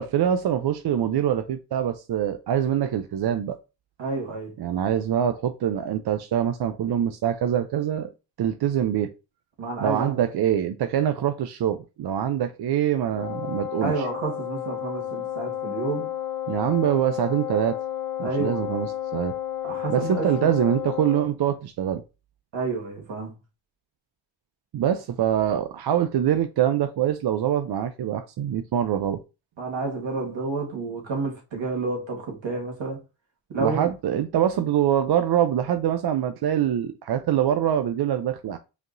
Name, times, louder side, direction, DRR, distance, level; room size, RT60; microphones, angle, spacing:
voice 1, 0.0-3.6 4.6-8.1 8.4-9.1 9.8-13.9 16.5-17.8 18.2-19.4 19.9-22.0 24.7-29.2 33.6-38.6, right 10 dB, 55° right, 0.5 m, -24 dB
voice 2, 4.0-4.5 9.6-10.2 13.8-16.1 18.2-18.7 19.6-20.5 22.5-23.3 29.6-33.0 33.5-33.9, right 3 dB, 70° right, 1.7 m, -30 dB
Wind instrument woodwind instrument, 13.1-21.3, left 12 dB, 45° left, 0.7 m, -32 dB
5.0 x 3.0 x 2.6 m
cardioid pair, 75°, 47 cm